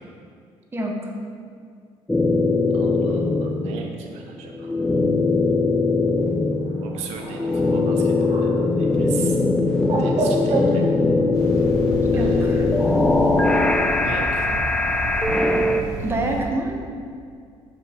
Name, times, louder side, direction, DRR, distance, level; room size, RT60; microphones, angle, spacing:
voice 1, 0.7-1.1 12.1-12.7 16.0-16.9, right 1 dB, 20° right, 0 dB, 1.0 m, -27 dB
sound 1, 2.1-3.9 4.3-15.8, left 3 dB, 5° left, 0.5 m, -21 dB
voice 2, 2.7-4.7 6.8-9.4 10.0-10.9 12.1-13.0 14.0-14.4, right 6 dB, 80° right, 3 dB, 0.6 m, -37 dB
Bird, 6.5-12.0, right 2 dB, 50° right, 1.1 m, -30 dB
sound 2, 11.3-16.4, equal, 35° left, 1.5 m, -31 dB
7.1 x 4.3 x 3.8 m, 2.2 s
supercardioid pair, 90°, 11 cm